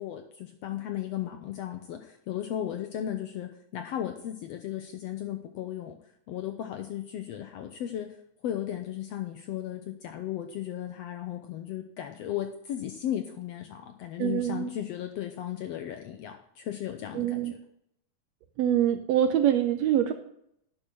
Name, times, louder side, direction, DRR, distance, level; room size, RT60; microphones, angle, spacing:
voice 1, 0.0-6.0 6.3-8.1 8.4-17.6, left 11 dB, 75° left, 6 dB, 1.5 m, -35 dB
voice 2, 14.2-14.7 17.1-17.5 18.6-20.1, right 10 dB, 80° right, 8 dB, 1.6 m, -24 dB
10.0 x 5.9 x 6.2 m, 0.73 s
omnidirectional pair, 3.6 m